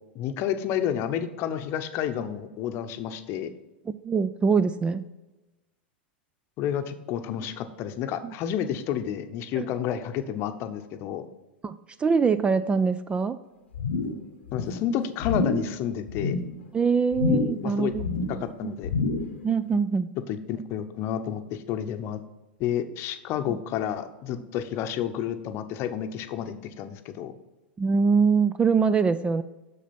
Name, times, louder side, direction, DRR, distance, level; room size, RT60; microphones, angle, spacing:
voice 1, 0.1-3.5 6.6-11.2 14.5-16.4 17.6-17.9 18.3-18.9 20.3-22.2 22.6-27.3, left 9 dB, 45° left, 9 dB, 0.8 m, -30 dB
voice 2, 3.9-5.0 8.2-8.3 9.6-9.7 11.6-13.4 16.7-18.1 18.6-18.7 19.4-20.1 23.5-23.6 27.8-29.4, right 5 dB, 15° right, 13 dB, 0.3 m, -23 dB
sound 1, 13.7-14.2 14.5-14.9 15.2-15.7 16.1-16.5 17.1-17.7 17.9-18.4 18.8-19.4 19.7-19.8, left 3 dB, 75° left, 0.8 m, -27 dB
7.2 x 6.7 x 4.3 m, 1.1 s
hypercardioid pair, 95°, 6 cm